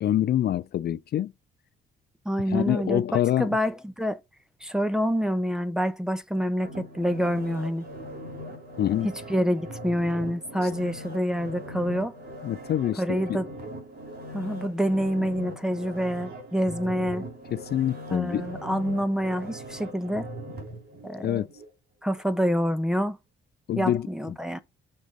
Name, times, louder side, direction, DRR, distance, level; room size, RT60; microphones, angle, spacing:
voice 1, 0.0-1.3 2.5-3.5 8.8-9.1 10.6-10.7 12.4-13.0 17.5-18.5 21.2-21.5 23.7-24.1, left 11 dB, 55° left, 0.4 m, -26 dB
voice 2, 2.2-3.0 3.4-4.2 4.6-7.8 9.3-12.1 13.0-13.5 14.3-17.3 18.1-20.3 21.0-21.4 22.0-23.2 23.8-24.6, equal, 5° right, 1.1 m, -27 dB
sound 1, 6.6-21.7 22.1-22.2, equal, 55° right, 3.8 m, -40 dB
6.6 x 3.5 x 5.3 m
cardioid pair, 90°, 20 cm